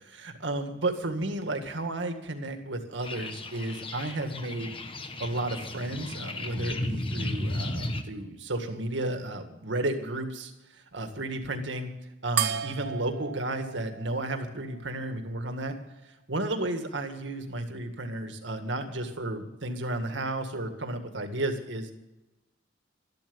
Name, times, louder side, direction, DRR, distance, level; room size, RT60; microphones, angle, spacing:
voice 1, 0.1-4.8 5.2-10.5 10.9-11.9 12.2-15.7 16.3-21.9, right 2 dB, 80° right, 6 dB, 1.9 m, -33 dB
sound 1, 3.0-8.0, left 1 dB, 30° left, 1.1 m, -34 dB
sound 2, 12.4-15.2, right 8 dB, 65° right, 1.1 m, -34 dB
13.0 x 12.0 x 7.0 m, 0.99 s
head